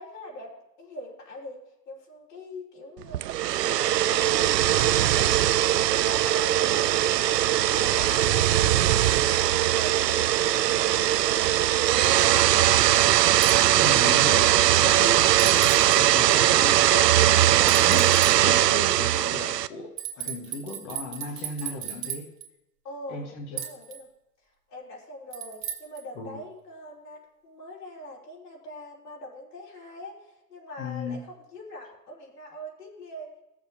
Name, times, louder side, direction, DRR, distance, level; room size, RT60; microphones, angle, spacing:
voice 1, 0.0-3.3 3.6-7.1 7.6-13.0 22.8-24.1 24.7-33.3, left 1 dB, 80° left, -3 dB, 3.1 m, -43 dB
sound 1, 3.1-19.7, right 13 dB, 85° right, 0.5 m, -20 dB
sound 2, 13.4-13.6 15.4-16.0 17.7-18.3 20.0-22.5 23.6-24.0 25.3-26.0, right 10 dB, 25° right, 1.3 m, -35 dB
voice 2, 13.7-22.3 23.1-23.7 26.2-26.4 30.8-31.2, left 3 dB, 10° left, 2 dB, 0.3 m, -36 dB
19.0 x 7.1 x 2.6 m, 0.91 s
hypercardioid pair, 120°, 47 cm